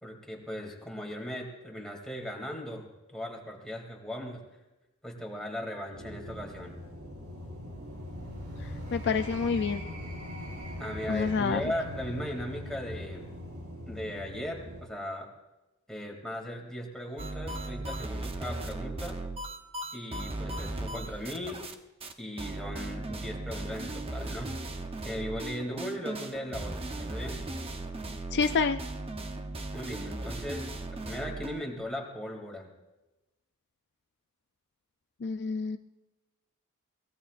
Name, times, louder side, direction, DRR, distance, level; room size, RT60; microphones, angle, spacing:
voice 1, 0.0-4.4 5.0-6.8 10.8-13.3 13.9-15.3 15.9-19.2 19.9-21.6 22.2-24.5 25.0-27.5 29.7-30.7 31.0-32.7, equal, ahead, -1 dB, 2.7 m, -38 dB
sound 1, 5.9-14.8, left 1 dB, 75° right, 4.5 m, -41 dB
voice 2, 8.9-9.8 11.1-11.6 28.3-28.8 35.2-35.8, left 5 dB, 50° left, 8 dB, 0.5 m, -27 dB
sound 2, 17.2-21.7 22.0-22.1 22.4-31.6, right 2 dB, 25° right, 0.9 m, -37 dB
23.5 x 19.0 x 2.5 m, 1.0 s
head